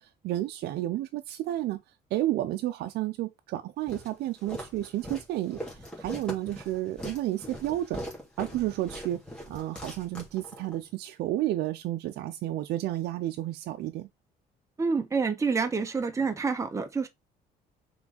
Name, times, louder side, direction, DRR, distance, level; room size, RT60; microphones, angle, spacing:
voice 1, 0.0-1.8 2.1-8.0 8.4-9.2 9.5-14.1, right 14 dB, 75° right, 0.6 m, -31 dB
Walk footsteps, 3.9-10.8, equal, 5° left, 2.9 m, -41 dB
voice 2, 14.8-17.1, right 4 dB, 20° right, 1.1 m, -28 dB
6.0 x 3.9 x 4.0 m
cardioid pair, 110°, 17 cm